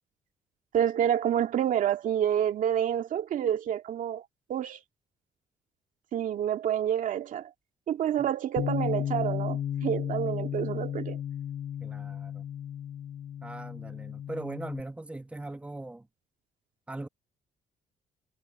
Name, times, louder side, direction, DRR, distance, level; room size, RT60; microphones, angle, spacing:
voice 1, 0.7-4.2 4.5-4.8 6.1-7.5 7.9-11.2, right 10 dB, 65° right, 2.1 m, -28 dB
Bass guitar, 8.6-14.8, left 10 dB, 40° left, 0.6 m, -34 dB
voice 2, 11.8-12.4 13.4-16.1 16.9-17.1, right 2 dB, 10° right, 1.1 m, -40 dB
cardioid pair, 110°, 15 cm